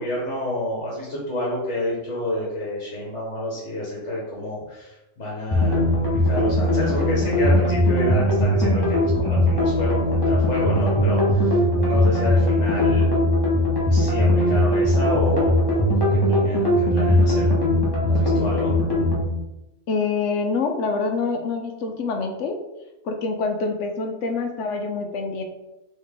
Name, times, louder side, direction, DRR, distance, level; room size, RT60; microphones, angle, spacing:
voice 1, 0.0-13.1 13.9-17.5 18.1-18.8, left 1 dB, 50° left, -5 dB, 1.3 m, -29 dB
sound 1, 5.5-19.2, left 1 dB, 25° left, 0.6 m, -20 dB
voice 2, 19.9-22.6 23.0-25.4, left 4 dB, 65° left, 4 dB, 0.7 m, -26 dB
3.8 x 3.1 x 3.4 m, 0.96 s
omnidirectional pair, 1.7 m